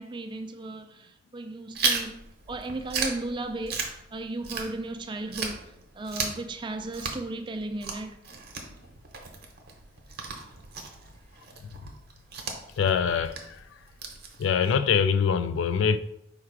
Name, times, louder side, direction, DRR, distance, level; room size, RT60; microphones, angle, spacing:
voice 1, 0.0-8.2, right 2 dB, 25° right, 0.4 m, -36 dB
Chewing mastication, 1.7-5.0 5.3-14.8, right 4 dB, 55° right, 0.8 m, -35 dB
voice 2, 12.8-13.8 14.4-16.0, left 6 dB, 80° left, 0.3 m, -24 dB
4.5 x 2.4 x 4.6 m
head